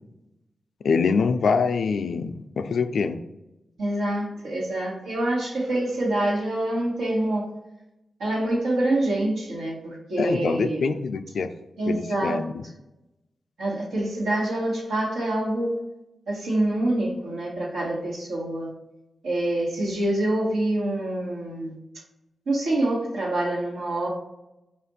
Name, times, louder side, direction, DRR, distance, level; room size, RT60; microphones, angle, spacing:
voice 1, 0.8-3.2 10.2-11.5 11.9-12.6, left 5 dB, 75° left, 9 dB, 0.3 m, -24 dB
voice 2, 3.8-7.5 8.2-11.0 11.8-12.4 13.6-15.8 16.3-18.7 19.2-21.7 22.5-24.1, right 1 dB, 90° right, -4 dB, 1.3 m, -26 dB
5.0 x 2.5 x 3.9 m, 0.92 s
supercardioid pair, 45°, 0 cm